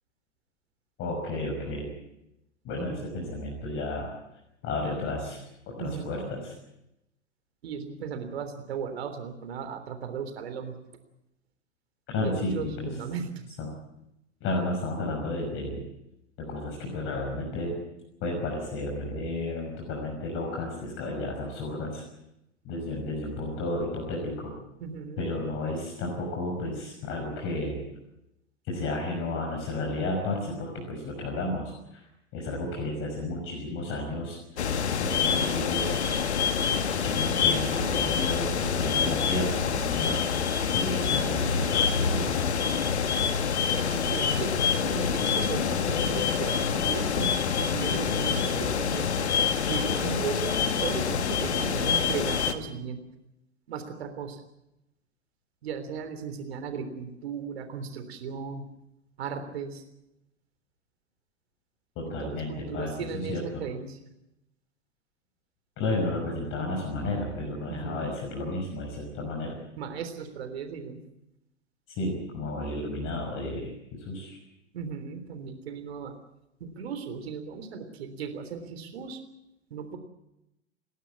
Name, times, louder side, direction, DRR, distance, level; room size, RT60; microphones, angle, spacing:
voice 1, 1.0-1.9 2.6-4.1 4.6-6.5 12.1-12.9 13.6-13.7 14.4-15.8 16.4-17.8 18.2-22.0 22.6-24.5 25.2-27.8 28.6-32.0 32.3-34.6 35.0-36.0 36.9-40.2 40.6-42.4 62.0-63.6 65.8-69.6 71.9-74.4, left 2 dB, 35° left, 0 dB, 5.7 m, -32 dB
voice 2, 5.8-6.3 7.6-10.7 12.1-13.6 24.8-25.3 43.6-44.5 44.8-53.0 53.7-54.4 55.6-58.7 59.2-59.8 62.0-64.0 67.7-68.1 69.8-71.0 74.7-76.1 76.6-79.2 79.7-80.0, right 6 dB, 60° right, 8 dB, 3.6 m, -36 dB
sound 1, 34.6-52.5, left 6 dB, 70° left, 1.8 m, -26 dB
30.0 x 12.5 x 8.5 m, 0.87 s
figure-of-eight pair, 95°, 35 cm